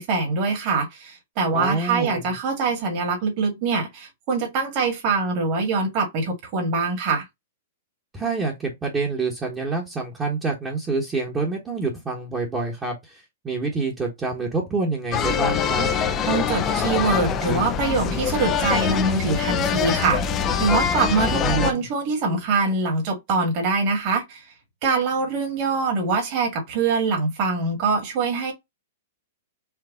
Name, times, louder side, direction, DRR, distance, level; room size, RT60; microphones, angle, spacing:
voice 1, 0.0-7.3 16.3-24.4 24.8-28.5, right 4 dB, 40° right, 2.0 m, -24 dB
voice 2, 1.5-2.3 8.1-15.9 21.2-21.8, right 3 dB, 15° right, 1.2 m, -27 dB
sound 1, 15.1-21.7, left 7 dB, 25° left, 0.5 m, -24 dB
4.6 x 2.4 x 3.7 m
hypercardioid pair, 140°, 0 cm